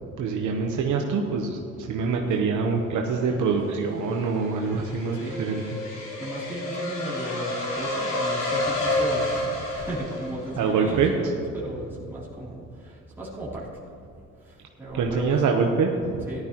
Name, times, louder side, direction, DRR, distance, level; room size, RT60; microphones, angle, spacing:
voice 1, 0.2-5.8 10.5-11.1 14.9-16.3, right 5 dB, 80° right, 1 dB, 1.0 m, -25 dB
sound 1, 3.6-10.7, left 2 dB, 85° left, 3.1 m, -30 dB
voice 2, 5.1-5.5 6.2-9.3 9.7-13.7 14.4-15.4 16.3-16.4, right 1 dB, 5° right, -9 dB, 3.1 m, -35 dB
14.5 x 12.0 x 3.0 m, 2.6 s
cardioid pair, 90°, 30 cm